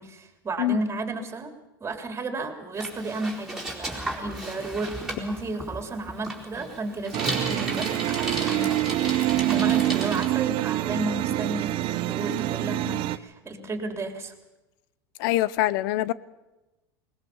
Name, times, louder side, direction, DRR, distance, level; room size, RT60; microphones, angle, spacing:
voice 1, 0.0-1.5 1.8-8.9 9.4-14.3, right 2 dB, 20° right, 5 dB, 3.4 m, -33 dB
Bicycle, 2.7-10.2, right 1 dB, 5° right, 4.4 m, -35 dB
sound 1, 7.1-13.2, right 15 dB, 45° right, 0.8 m, -26 dB
voice 2, 15.2-16.1, left 15 dB, 65° left, 20 dB, 0.7 m, -24 dB
21.5 x 19.5 x 7.2 m, 1.0 s
hypercardioid pair, 105°, 12 cm